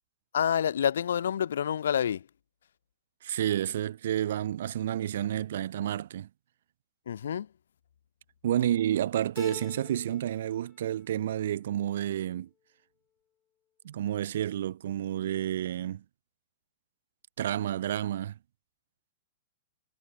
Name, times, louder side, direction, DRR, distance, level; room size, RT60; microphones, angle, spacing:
voice 1, 0.3-2.3 7.1-7.5, left 9 dB, 85° left, 1.3 m, -28 dB
voice 2, 3.2-6.3 8.4-12.5 13.8-16.0 17.4-18.3, right 11 dB, 65° right, 0.7 m, -30 dB
Keyboard (musical), 9.4-10.5 10.8-11.5, left 10 dB, 20° left, 0.6 m, -47 dB
hypercardioid pair, 160°, 0 cm